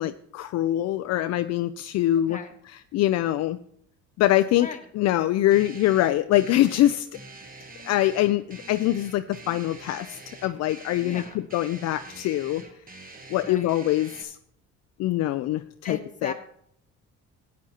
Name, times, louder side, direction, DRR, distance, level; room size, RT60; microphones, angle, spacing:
voice 1, 0.0-2.4 2.9-3.6 4.2-4.7 5.0-7.1 7.8-12.6 13.3-14.4 15.0-16.3, left 14 dB, 60° left, 10 dB, 0.4 m, -24 dB
voice 2, 2.1-2.5 4.6-4.9 7.1-7.2 11.0-11.4 13.4-13.8 15.8-16.3, left 4 dB, 25° left, 5 dB, 1.2 m, -38 dB
sound 1, 5.5-14.2, right 2 dB, 30° right, 1.2 m, -45 dB
13.5 x 9.4 x 2.9 m, 0.71 s
cardioid pair, 105°, 30 cm